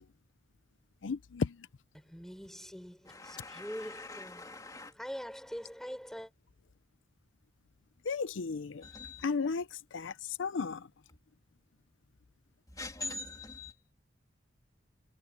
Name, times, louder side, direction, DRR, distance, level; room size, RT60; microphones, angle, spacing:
voice 1, 1.0-1.5 8.1-8.7 9.2-9.6 9.9-10.1 10.4-10.8, left 4 dB, 90° left, 0.6 m, -33 dB
voice 2, 2.1-4.6 5.0-6.3, equal, ahead, 6.0 m, -43 dB
voice 3, 3.0-4.9 8.8-9.2 12.7-13.7, left 3 dB, 20° left, 2.8 m, -43 dB
head